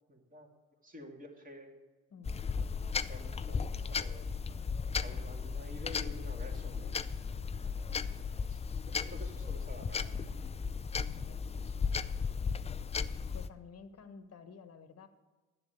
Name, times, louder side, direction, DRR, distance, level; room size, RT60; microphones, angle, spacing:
voice 1, 0.1-0.5 0.8-1.8 3.1-4.3 5.0-10.1 10.7-11.0 11.6-11.7, left 1 dB, 20° right, 1 dB, 2.6 m, -50 dB
voice 2, 2.1-2.4 11.1-11.5 12.4-12.7 13.3-15.1, left 5 dB, 40° left, 9 dB, 1.4 m, -52 dB
sound 1, 2.2-13.5, left 5 dB, 15° left, 0.4 m, -36 dB
10.5 x 7.8 x 7.0 m, 1.3 s
supercardioid pair, 70°, 39 cm